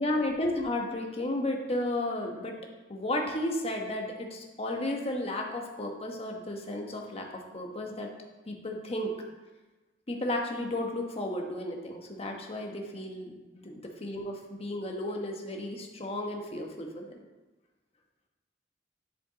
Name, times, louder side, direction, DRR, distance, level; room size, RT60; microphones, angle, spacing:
voice 1, 0.0-2.6 2.9-8.1 8.5-9.1 10.1-17.1, left 1 dB, 35° left, 2 dB, 1.1 m, -33 dB
10.5 x 5.0 x 4.0 m, 1.2 s
head